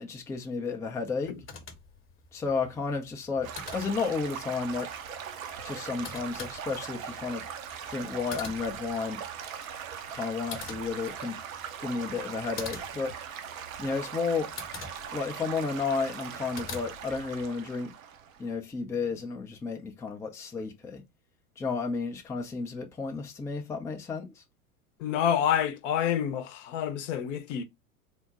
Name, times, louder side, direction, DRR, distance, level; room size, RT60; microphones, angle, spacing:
voice 1, 0.0-1.3 2.3-4.9 5.6-7.4 7.9-9.2 10.1-11.4 11.8-13.1 13.8-14.5 15.1-17.9 18.4-21.0 21.6-24.4, left 4 dB, 5° left, 0.5 m, -32 dB
sound 1, 1.2-17.5, left 5 dB, 30° left, 1.0 m, -47 dB
Stream / Gurgling / Trickle dribble, 3.4-18.5, right 8 dB, 65° right, 0.8 m, -40 dB
voice 2, 25.0-27.6, left 9 dB, 55° left, 0.8 m, -28 dB
3.7 x 2.1 x 4.1 m
figure-of-eight pair, 85°, 44 cm